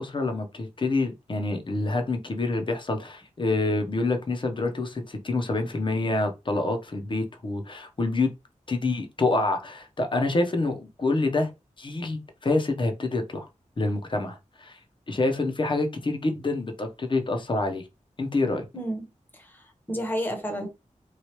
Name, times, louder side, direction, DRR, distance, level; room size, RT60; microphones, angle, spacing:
voice 1, 0.0-8.3 8.7-11.5 11.8-13.5 13.8-14.8 15.1-17.8 18.2-18.6, left 2 dB, 40° left, 0.7 m, -27 dB
voice 2, 18.7-19.1 19.3-20.7, equal, 15° left, 0.9 m, -31 dB
3.1 x 2.3 x 2.9 m
wide cardioid pair, 110°, 13 cm